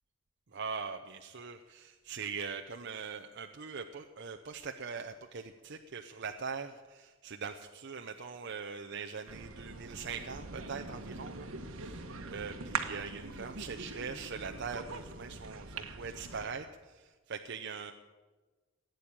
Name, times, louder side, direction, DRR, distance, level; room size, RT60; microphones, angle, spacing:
voice 1, 0.5-17.9, right 5 dB, 55° right, 5 dB, 0.7 m, -42 dB
sound 1, 9.3-16.5, right 4 dB, 80° right, 1.3 m, -42 dB
16.5 x 9.2 x 8.6 m, 1.3 s
head